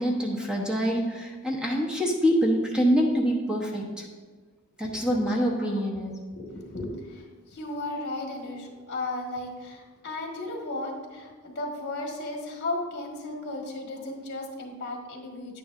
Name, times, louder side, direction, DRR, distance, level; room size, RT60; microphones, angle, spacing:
voice 1, 0.0-4.0 4.8-6.1, equal, 5° right, -1 dB, 0.9 m, -25 dB
voice 2, 4.8-6.0 6.3-15.6, left 2 dB, 55° left, 1 dB, 1.6 m, -35 dB
9.4 x 9.2 x 2.5 m, 1.4 s
head